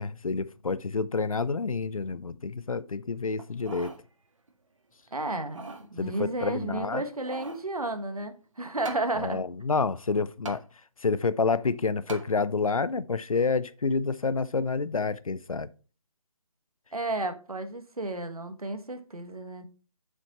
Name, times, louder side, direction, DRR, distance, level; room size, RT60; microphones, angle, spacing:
voice 1, 0.0-3.9 6.0-7.0 9.2-10.6 11.0-15.7, left 4 dB, 70° left, 0.7 m, -28 dB
sound 1, 3.4-4.0 4.5-4.6 5.3-5.9 6.9-7.7 8.8-9.1 10.4-10.6 12.1-12.3 12.9-13.0, right 3 dB, 60° right, 1.8 m, -41 dB
voice 2, 5.1-9.4 16.9-19.7, right 2 dB, 80° right, 1.6 m, -32 dB
8.0 x 7.6 x 3.1 m
figure-of-eight pair, 155°, 18 cm